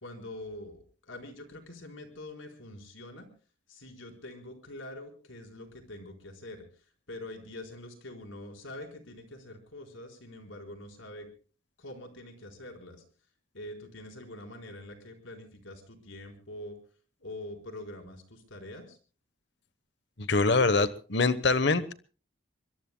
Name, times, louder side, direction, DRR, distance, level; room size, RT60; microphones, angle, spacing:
voice 1, 0.0-3.3 3.7-11.3 11.8-13.0 13.5-16.8 17.2-19.0, left 1 dB, 75° left, 3 dB, 4.3 m, -45 dB
voice 2, 20.2-21.9, left 3 dB, 60° left, 13 dB, 1.0 m, -24 dB
25.0 x 23.0 x 2.2 m, 0.38 s
head